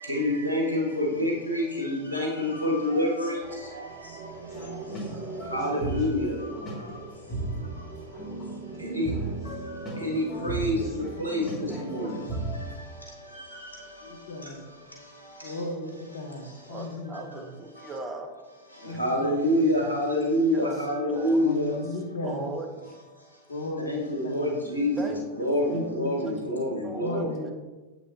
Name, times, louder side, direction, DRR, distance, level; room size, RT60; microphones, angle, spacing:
voice 1, 0.1-3.4 5.5-6.3 8.8-9.1 10.0-10.7 11.2-12.1 19.0-21.7 23.9-25.1 25.4-27.2, left 1 dB, 85° right, -1 dB, 1.5 m, -26 dB
sound 1, 3.4-15.0, right 4 dB, 45° right, 0.7 m, -44 dB
sound 2, 4.5-12.7, right 2 dB, 25° left, 2.2 m, -35 dB
voice 2, 14.0-14.6 15.4-17.5 18.8-19.9 21.4-22.5 23.5-24.5 25.7-26.7 27.0-27.5, left 1 dB, 70° left, 3 dB, 1.0 m, -36 dB
voice 3, 16.7-18.3 20.5-20.7 21.1-21.8 22.2-22.7 25.0-25.8 26.3-26.4 26.8-27.5, right 2 dB, 20° right, 3 dB, 0.9 m, -38 dB
7.7 x 5.8 x 2.8 m, 1.2 s
figure-of-eight pair, 90°, 0 cm